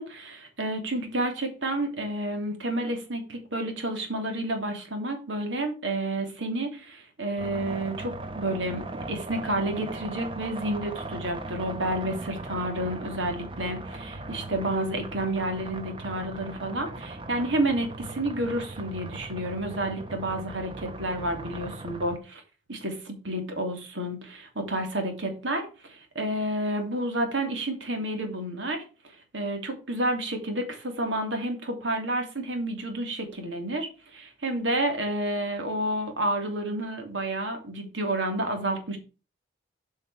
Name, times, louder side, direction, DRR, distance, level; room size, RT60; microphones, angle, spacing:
voice 1, 0.0-22.4 22.7-28.8 29.3-39.0, right 1 dB, 75° right, 5 dB, 2.8 m, -30 dB
sound 1, 7.4-22.2, right 2 dB, 25° right, 1.1 m, -39 dB
8.1 x 5.7 x 6.1 m, 0.33 s
head